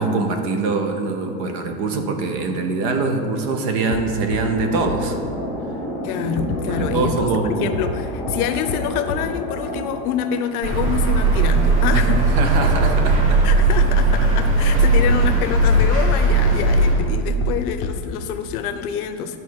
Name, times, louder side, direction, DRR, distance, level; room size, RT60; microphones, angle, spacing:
voice 1, 0.0-5.2 6.7-7.7 11.9-12.1 12.4-13.5, right 4 dB, 30° right, 5 dB, 0.5 m, -23 dB
sound 1, 3.9-4.0 4.3-4.4 4.9-5.0 6.4-7.1 7.7-8.0 8.3-8.4 8.7-8.8 9.1-9.2 10.7-11.0 11.3-11.4 12.6-12.7 13.0-13.1 13.6-13.7 15.1-15.9 16.5-16.7 17.0-17.1 17.4-17.5 17.8-17.9, left 5 dB, 25° left, 0.7 m, -27 dB
sound 2, 3.9-12.0, equal, ahead, 1.4 m, -32 dB
voice 2, 6.0-12.2 13.4-19.4, left 8 dB, 75° left, 8 dB, 0.8 m, -26 dB
sound 3, 10.6-16.9, right 2 dB, 85° right, 2.4 m, -17 dB
10.5 x 4.1 x 6.2 m, 2.3 s
supercardioid pair, 165°, 45 cm